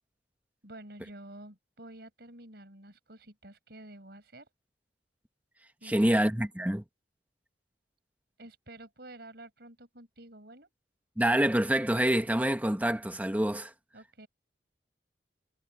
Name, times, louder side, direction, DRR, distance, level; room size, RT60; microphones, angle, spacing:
voice 1, 0.6-4.5 5.8-6.3 8.4-10.7 13.9-14.3, right 1 dB, 65° right, 5.9 m, -49 dB
voice 2, 5.8-6.8 11.2-13.7, right 1 dB, 10° right, 1.2 m, -26 dB
head